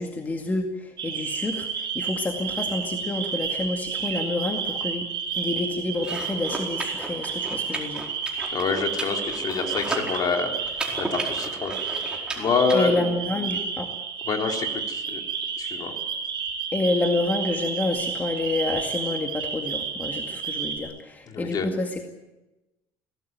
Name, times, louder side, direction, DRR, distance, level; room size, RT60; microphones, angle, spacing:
voice 1, 0.0-5.1 5.4-8.1 12.7-13.9 16.7-22.0, left 2 dB, 15° left, 3 dB, 2.2 m, -28 dB
sound 1, 1.0-20.8, right 6 dB, 45° right, 6.8 m, -31 dB
sound 2, 6.0-12.8, right 2 dB, 10° right, 4.6 m, -35 dB
voice 2, 8.5-10.5 11.0-11.7 12.4-12.9 14.3-15.2 15.6-15.9 21.3-21.7, left 5 dB, 40° left, 3 dB, 3.6 m, -26 dB
23.0 x 18.0 x 9.4 m, 1.0 s
cardioid pair, 140°, 10 cm